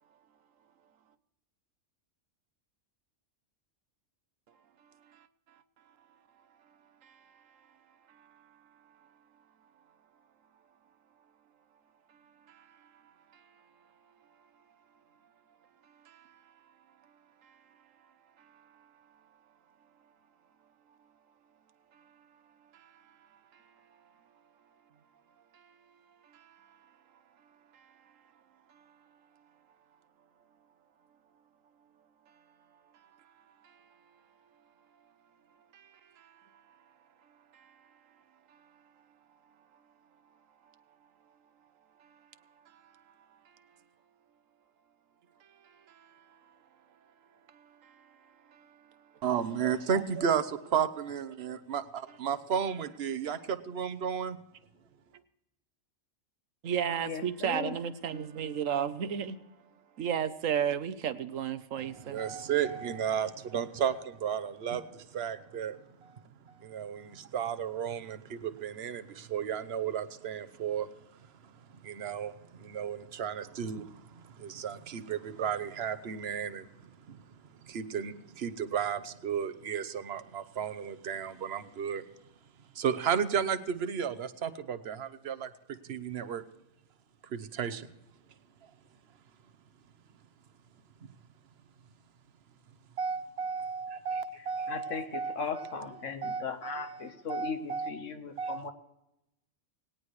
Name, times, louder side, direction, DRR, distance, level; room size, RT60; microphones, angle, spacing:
voice 1, 4.8-5.6 7.0-7.6 8.1-9.1 12.1-13.6 15.8-16.7 17.4-17.6 18.4-18.9 21.9-22.4 22.7-23.8 25.5-25.8 26.2-26.9 27.7-28.1 28.7-29.0 32.9-33.9 35.7-36.8 37.5-37.9 38.5-38.8 42.0-42.3 42.6-43.6 45.4-46.6 47.0-47.1 47.5-49.2 56.6-59.6 60.0-62.2, right 8 dB, 90° right, 1.2 m, -38 dB
voice 2, 49.2-54.4 61.8-77.2 77.6-82.0 82.7-85.5 85.8-86.4 87.2-87.9 88.6-88.7 93.0-97.9 98.4-98.7, right 7 dB, 55° right, 1.1 m, -34 dB
voice 3, 57.0-57.7 94.7-98.7, left 6 dB, 75° left, 1.5 m, -38 dB
19.0 x 18.0 x 3.2 m
omnidirectional pair, 1.3 m